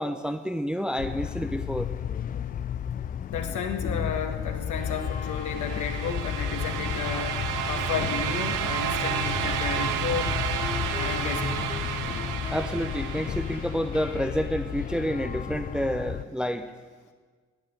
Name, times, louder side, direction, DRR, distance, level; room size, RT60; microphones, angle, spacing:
voice 1, 0.0-1.9 12.5-16.7, equal, ahead, 6 dB, 1.0 m, -29 dB
sound 1, 1.0-16.3, left 9 dB, 25° left, 0.4 m, -33 dB
voice 2, 3.3-7.4 7.7-10.3 10.9-11.8, left 6 dB, 50° left, 4 dB, 2.0 m, -32 dB
sound 2, 5.1-14.0, right 9 dB, 55° right, 0.9 m, -31 dB
Wind instrument woodwind instrument, 8.6-15.2, left 3 dB, 85° left, 1.6 m, -42 dB
14.5 x 10.0 x 8.2 m, 1.5 s
figure-of-eight pair, 45°, 38 cm